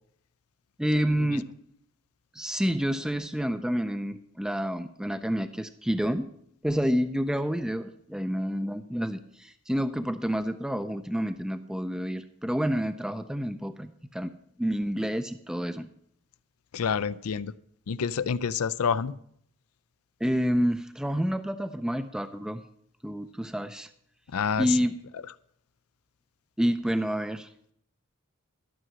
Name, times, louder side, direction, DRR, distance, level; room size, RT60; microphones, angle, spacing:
voice 1, 0.8-1.5 2.3-6.3 6.6-15.9 20.2-22.6 23.0-23.9 24.6-25.0 26.6-27.7, equal, 5° right, 9 dB, 0.4 m, -29 dB
voice 2, 16.7-17.5 17.9-19.1 24.3-24.8, left 6 dB, 80° left, 17 dB, 0.5 m, -27 dB
12.5 x 6.2 x 7.4 m, 0.68 s
head